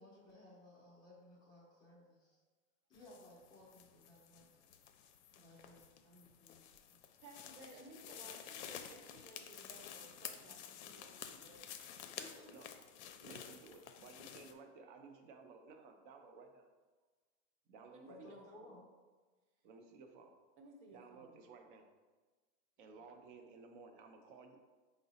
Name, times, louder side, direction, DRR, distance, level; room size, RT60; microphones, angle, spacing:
voice 1, 0.0-2.4 2.9-4.7 5.3-7.0 12.2-12.5 18.1-18.9 22.8-22.9, left 1 dB, 15° left, -6 dB, 0.4 m, -59 dB
sound 1, 2.9-14.5, left 9 dB, 75° left, 0.5 m, -52 dB
voice 2, 7.2-11.7 17.8-18.7 20.6-21.5, right 2 dB, 75° right, 1 dB, 0.9 m, -59 dB
voice 3, 13.2-16.7 17.7-18.4 19.6-20.4 20.9-21.9 22.8-24.6, right 4 dB, 45° right, 4 dB, 0.6 m, -56 dB
4.6 x 2.0 x 3.9 m, 1.3 s
supercardioid pair, 155°, 35 cm